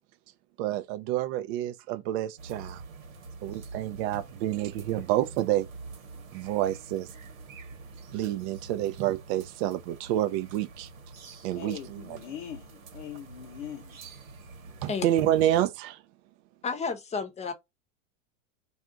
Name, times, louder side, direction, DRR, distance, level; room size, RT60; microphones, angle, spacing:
voice 1, 0.6-2.8 3.4-5.7 6.3-7.1 8.1-10.9 11.4-12.2 14.8-16.0, right 13 dB, 55° right, 0.5 m, -28 dB
sound 1, 2.4-15.7, right 3 dB, 85° right, 1.1 m, -46 dB
voice 2, 11.5-14.0, left 10 dB, 60° left, 0.8 m, -41 dB
voice 3, 16.6-17.5, left 5 dB, 15° left, 0.7 m, -31 dB
2.4 x 2.4 x 3.7 m
hypercardioid pair, 115°, 39 cm